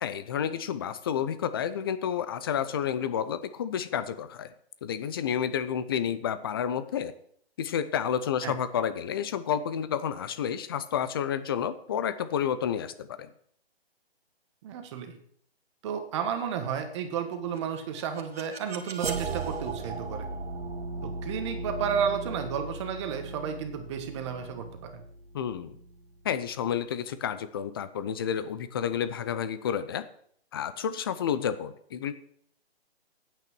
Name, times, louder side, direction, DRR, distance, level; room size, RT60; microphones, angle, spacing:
voice 1, 0.0-4.5 4.8-7.1 7.6-13.3 25.3-25.8 26.2-30.0 30.5-32.1, left 8 dB, 25° left, 13 dB, 0.6 m, -30 dB
voice 2, 14.6-15.2 15.8-20.3 21.0-25.0, right 7 dB, 30° right, 6 dB, 1.5 m, -32 dB
sound 1, 17.6-26.5, right 3 dB, 75° right, 2.3 m, -37 dB
9.0 x 9.0 x 6.2 m, 0.63 s
hypercardioid pair, 155°, 32 cm